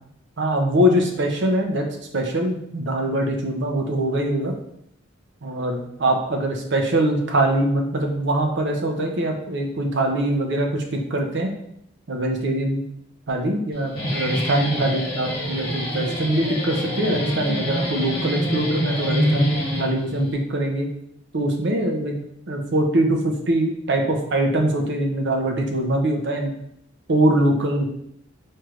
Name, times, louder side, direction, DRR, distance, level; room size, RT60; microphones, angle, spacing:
voice 1, 0.4-1.8 2.1-4.5 5.4-11.6 12.1-12.8 13.3-20.9 21.3-22.2 22.5-26.5 27.1-27.9, right 1 dB, 60° right, 2 dB, 0.6 m, -23 dB
Guitar, 13.7-20.3, equal, 50° left, 1.1 m, -26 dB
4.4 x 3.2 x 2.4 m, 0.72 s
head